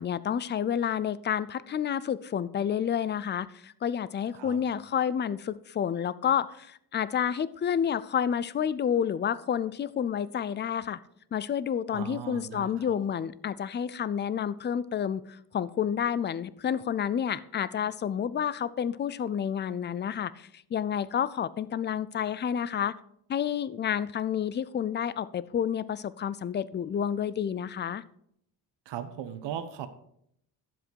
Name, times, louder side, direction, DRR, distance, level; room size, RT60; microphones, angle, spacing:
voice 1, 0.0-11.0 11.3-22.9 23.3-28.0, left 8 dB, 25° left, 18 dB, 0.4 m, -30 dB
voice 2, 11.9-13.0 28.9-29.9, right 9 dB, 85° right, 9 dB, 1.1 m, -38 dB
11.0 x 7.5 x 4.5 m, 0.71 s
cardioid pair, 110°, 42 cm